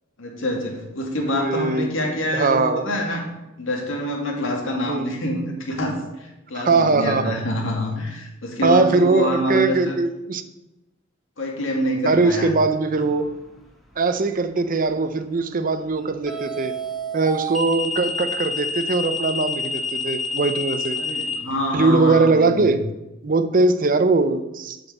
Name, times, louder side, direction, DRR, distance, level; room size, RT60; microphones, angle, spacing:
voice 1, 0.2-3.3 3.6-9.9 11.4-12.5 21.0-22.8, equal, 70° left, 1 dB, 2.2 m, -26 dB
voice 2, 1.3-2.0 2.3-2.8 4.9-5.1 6.5-7.3 8.6-10.4 12.0-13.3 14.0-16.7 17.1-21.0 21.7-22.8 23.2-24.8, right 3 dB, 45° right, 10 dB, 0.7 m, -20 dB
sound 1, 13.0-13.3 16.3-21.3, left 2 dB, ahead, 1.5 m, -28 dB
8.0 x 5.4 x 7.1 m, 0.98 s
head